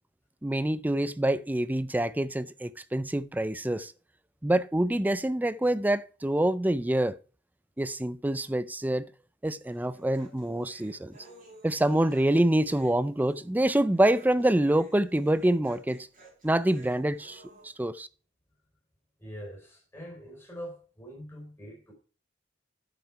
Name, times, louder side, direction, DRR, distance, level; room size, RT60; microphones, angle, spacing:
voice 1, 0.4-3.9 4.4-7.2 7.8-9.1 9.4-11.1 11.6-16.1 16.4-18.1, right 1 dB, 10° right, 0.4 m, -26 dB
Human voice, 9.6-17.7, right 2 dB, 45° right, 4.9 m, -55 dB
voice 2, 19.2-21.9, equal, 10° left, 4.2 m, -43 dB
9.0 x 7.3 x 4.6 m
head